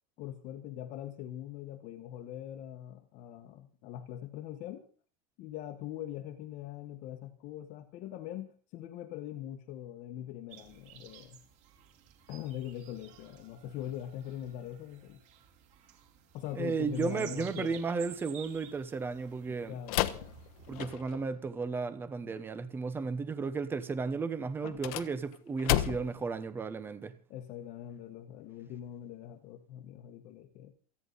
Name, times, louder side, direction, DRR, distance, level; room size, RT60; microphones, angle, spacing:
voice 1, 0.2-4.8 5.4-11.4 12.3-15.2 16.3-17.8 19.5-20.4 22.2-22.3 27.3-30.7, left 11 dB, 35° left, 1.4 m, -42 dB
sound 1, 10.5-20.9, right 9 dB, 35° right, 3.9 m, -53 dB
voice 2, 16.6-19.8 20.7-27.2, right 4 dB, 10° right, 1.0 m, -34 dB
sound 2, 19.9-21.3 24.6-26.3, left 15 dB, 65° left, 1.3 m, -32 dB
28.5 x 10.0 x 4.1 m
supercardioid pair, 175°, 21 cm